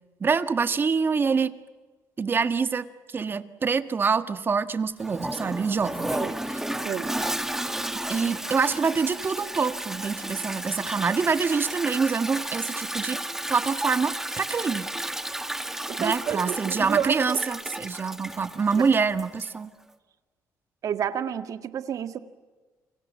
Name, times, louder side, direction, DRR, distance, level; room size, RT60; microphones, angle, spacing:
voice 1, 0.2-1.5 2.2-6.1 8.1-13.2 13.5-14.9 16.0-19.7, right 5 dB, 35° right, 11 dB, 1.5 m, -25 dB
Toilet flush, 5.0-19.6, right 1 dB, 5° right, 1.9 m, -33 dB
voice 2, 15.9-17.4 18.8-18.9 20.8-22.2, right 9 dB, 60° right, 10 dB, 1.8 m, -30 dB
29.5 x 25.0 x 7.4 m, 1.3 s
cardioid pair, 110°, 6 cm